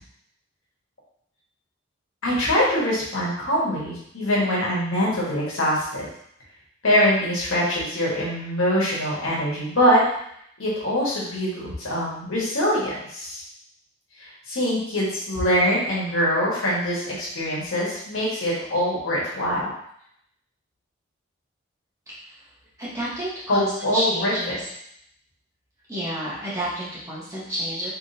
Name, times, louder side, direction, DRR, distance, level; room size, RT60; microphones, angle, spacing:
voice 1, 2.2-6.1 6.8-10.0 10.6-13.4 14.2-19.7 23.5-24.6, equal, 90° left, -6 dB, 1.4 m, -23 dB
voice 2, 22.8-24.6 25.9-27.9, right 1 dB, 15° right, -9 dB, 1.2 m, -30 dB
3.3 x 3.3 x 2.7 m, 0.71 s
head